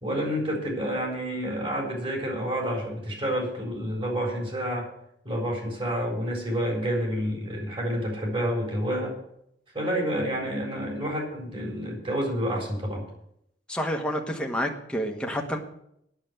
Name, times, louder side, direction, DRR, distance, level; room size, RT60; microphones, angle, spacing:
voice 1, 0.0-4.9 5.2-9.2 9.7-13.0, equal, 30° right, 0 dB, 4.1 m, -29 dB
voice 2, 13.7-15.6, equal, 5° left, 1 dB, 1.3 m, -29 dB
9.1 x 7.3 x 9.0 m, 0.75 s
head